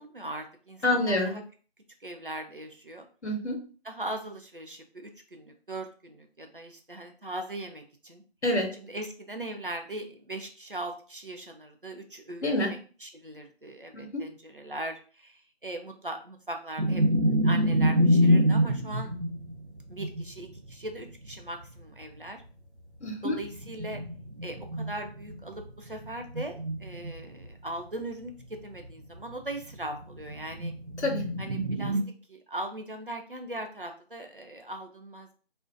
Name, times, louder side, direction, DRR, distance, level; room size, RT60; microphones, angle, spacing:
voice 1, 0.0-1.4 2.0-3.1 3.8-8.2 8.8-19.1 19.9-22.4 23.2-24.0 24.4-28.3 28.6-30.7 31.4-32.0 32.3-35.3, right 1 dB, 55° right, 4 dB, 0.4 m, -39 dB
voice 2, 0.8-1.3 3.2-3.6 8.4-8.7 12.4-12.7 13.9-14.2 23.0-23.4 31.0-31.3, left 1 dB, 85° left, 2 dB, 0.9 m, -27 dB
sound 1, 16.8-22.0 23.3-27.5 27.8-27.9 28.2-32.0, equal, 80° right, 0.7 m, -27 dB
2.5 x 2.1 x 2.4 m, 0.38 s
figure-of-eight pair, 180°, 33 cm